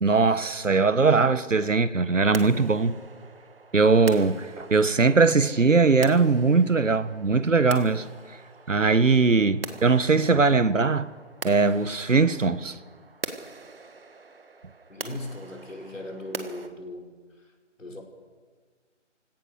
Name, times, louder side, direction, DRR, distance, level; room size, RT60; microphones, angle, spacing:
voice 1, 0.0-3.0 3.7-8.0 8.7-11.1 11.4-12.8, right 4 dB, 85° right, 1.5 m, -20 dB
sound 1, 2.3-16.7, right 4 dB, 50° right, 1.9 m, -42 dB
voice 2, 14.9-17.5 17.8-18.0, left 1 dB, 85° left, 5.6 m, -38 dB
29.5 x 17.0 x 6.5 m
figure-of-eight pair, 165°, 37 cm